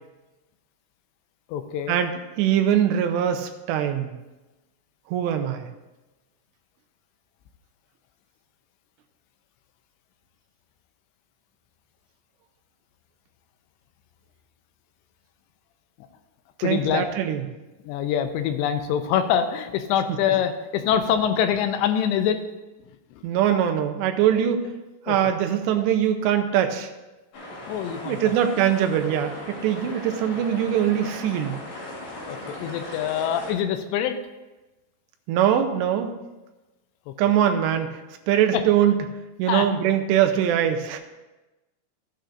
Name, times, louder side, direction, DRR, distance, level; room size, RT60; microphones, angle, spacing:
voice 1, 1.5-2.0 16.6-17.1 17.8-22.4 25.1-25.2 27.7-28.3 32.3-34.2 37.1-37.2 38.5-38.6 39.5-39.7, left 9 dB, 85° left, 7 dB, 2.9 m, -24 dB
voice 2, 2.4-4.1 5.1-5.7 16.6-17.4 23.2-24.6 25.1-26.9 28.1-31.6 35.3-36.1 37.2-38.0 38.3-39.0 39.4-41.0, right 10 dB, 85° right, 6 dB, 2.9 m, -22 dB
sound 1, 27.3-33.5, left 1 dB, 55° left, 3.9 m, -38 dB
14.0 x 8.8 x 2.6 m, 1.1 s
omnidirectional pair, 5.0 m